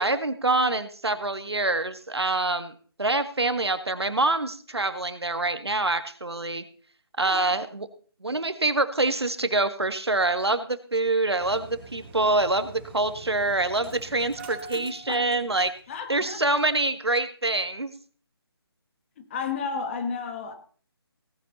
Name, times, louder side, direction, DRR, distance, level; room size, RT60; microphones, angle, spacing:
voice 1, 0.0-6.6 7.2-7.9 8.2-15.7 16.1-17.9, right 2 dB, 80° right, 1.7 m, -25 dB
voice 2, 7.2-7.5 14.7-15.3 15.9-16.4 19.2-20.5, left 5 dB, 30° left, 2.1 m, -33 dB
Engine starting, 11.4-16.0 16.2-16.3 16.7-16.8, right 3 dB, 25° right, 3.5 m, -44 dB
18.0 x 10.5 x 4.2 m
figure-of-eight pair, 150°, 13 cm